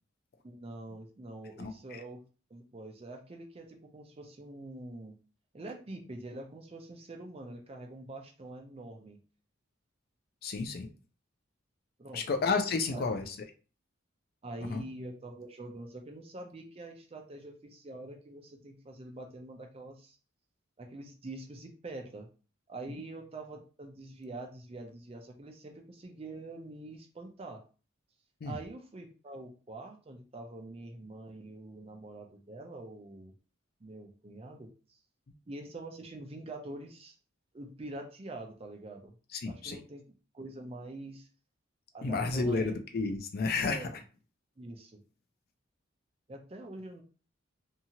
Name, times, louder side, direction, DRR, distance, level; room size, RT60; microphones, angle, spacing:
voice 1, 0.4-2.2 2.5-5.2 5.5-9.2 12.0-12.2 12.9-13.0 14.4-20.2 20.8-22.3 22.7-27.6 28.4-33.3 33.8-35.0 35.5-37.2 37.5-39.2 39.5-40.0 40.3-41.3 41.9-42.8 43.7-43.9 44.6-45.0 46.3-47.0, right 2 dB, 30° right, 3 dB, 0.4 m, -45 dB
voice 2, 1.6-2.0 10.4-10.9 12.1-13.4 14.7-14.8 28.4-28.6 39.3-39.8 42.0-44.0, left 4 dB, 45° left, 6 dB, 0.4 m, -31 dB
2.7 x 2.4 x 2.8 m, 0.36 s
head